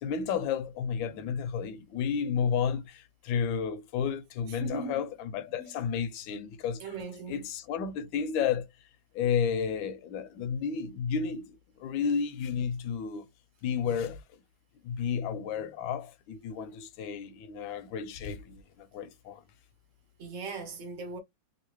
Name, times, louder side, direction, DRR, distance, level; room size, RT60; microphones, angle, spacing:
voice 1, 0.0-6.8 7.3-8.7 9.1-13.3 13.6-14.2 14.8-19.4, left 7 dB, 80° left, 1.3 m, -32 dB
voice 2, 4.5-5.1 5.5-5.7 6.8-7.4 20.2-21.2, right 3 dB, 60° right, 0.8 m, -38 dB
3.2 x 2.6 x 3.0 m
omnidirectional pair, 2.2 m